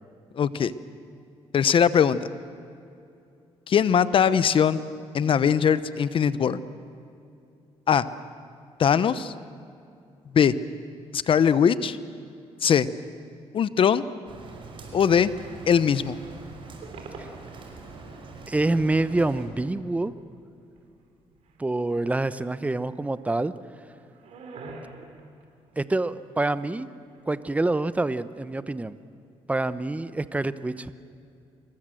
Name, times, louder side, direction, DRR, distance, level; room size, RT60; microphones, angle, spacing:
voice 1, 0.4-0.7 1.5-2.2 3.7-4.8 5.1-6.6 7.9-8.0 8.8-9.3 10.3-10.5 11.1-12.0 12.6-12.9 13.5-14.0 14.9-15.3 15.7-16.2, left 7 dB, 55° left, 15 dB, 0.9 m, -20 dB
Rain, 14.3-19.5, right 4 dB, 50° right, 5.3 m, -43 dB
sound 1, 16.8-17.9 18.1-18.2 18.8-18.9 19.1-20.2 20.7-21.8 22.1-22.6 23.0-23.3 23.7-26.6 26.9-27.7, right 3 dB, 75° right, 4.2 m, -46 dB
voice 2, 18.5-20.1 21.6-23.5 25.8-26.9 27.3-29.0 29.5-30.9, right 2 dB, 15° right, 14 dB, 0.9 m, -26 dB
26.5 x 22.0 x 7.8 m, 2.6 s
cardioid pair, 95°, 11 cm